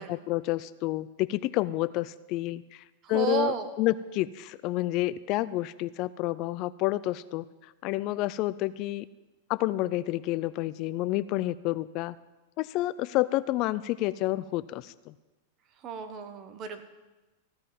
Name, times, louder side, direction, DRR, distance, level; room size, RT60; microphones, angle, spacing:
voice 1, 0.0-9.1 9.5-12.2 12.6-15.1, left 16 dB, 45° left, 17 dB, 0.3 m, -29 dB
voice 2, 3.1-3.7 15.8-16.8, right 7 dB, 35° right, 9 dB, 1.3 m, -32 dB
15.5 x 5.6 x 9.4 m, 1.1 s
supercardioid pair, 140°, 0 cm